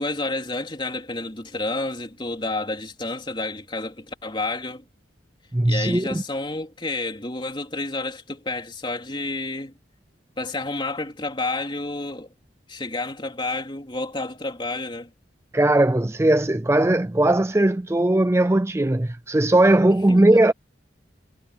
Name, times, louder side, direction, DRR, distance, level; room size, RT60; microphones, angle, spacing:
voice 1, 0.0-4.8 5.7-9.7 10.4-12.3 12.7-15.1 20.1-20.2, left 2 dB, 25° left, 3.5 m, -30 dB
voice 2, 5.5-6.2 15.5-20.5, right 1 dB, 15° right, 0.4 m, -19 dB
head